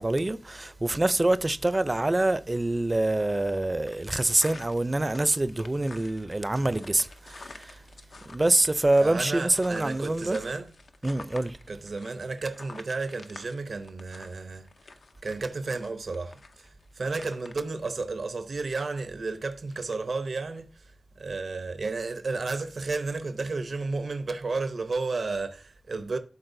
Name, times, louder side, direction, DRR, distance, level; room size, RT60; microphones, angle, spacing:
voice 1, 0.0-7.8 8.3-10.4 11.0-11.6, right 2 dB, 30° right, 0.4 m, -25 dB
sound 1, 3.9-17.8 19.7-20.0, left 3 dB, 80° left, 0.6 m, -49 dB
voice 2, 9.0-10.7 11.7-14.8 15.2-26.2, right 3 dB, 75° right, 0.6 m, -32 dB
12.0 x 4.2 x 2.6 m
wide cardioid pair, 100°, 0 cm